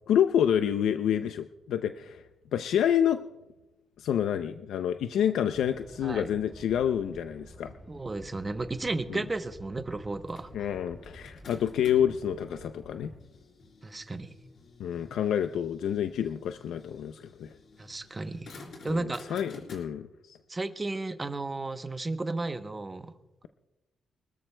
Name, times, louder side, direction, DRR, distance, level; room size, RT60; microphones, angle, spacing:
voice 1, 0.1-2.2 2.5-3.2 4.0-7.7 9.1-9.2 10.5-13.1 14.8-17.5 18.9-20.4, left 9 dB, 85° left, 9 dB, 0.5 m, -28 dB
sound 1, 5.5-13.2, left 1 dB, 15° left, 2.7 m, -50 dB
voice 2, 7.9-10.5 13.8-14.3 17.8-18.5 18.8-19.4 20.5-23.1, right 2 dB, 20° right, 9 dB, 0.8 m, -33 dB
sound 2, 10.3-12.2 12.8-19.8, left 3 dB, 50° left, 4.1 m, -51 dB
25.5 x 13.5 x 2.2 m, 1.0 s
cardioid pair, 140°, 0 cm